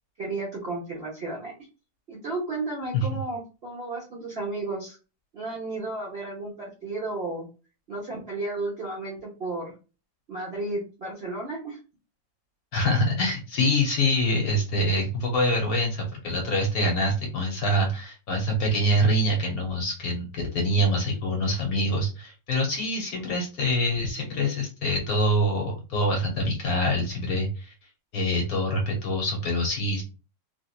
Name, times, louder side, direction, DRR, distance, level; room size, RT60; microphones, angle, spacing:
voice 1, 0.2-1.5 2.1-5.0 5.3-7.5 7.9-9.7 10.3-11.8, right 2 dB, 45° right, -5 dB, 0.8 m, -33 dB
voice 2, 12.7-27.7 28.1-30.0, equal, 60° left, 1 dB, 1.1 m, -25 dB
3.3 x 2.8 x 2.4 m, 0.33 s
omnidirectional pair, 2.0 m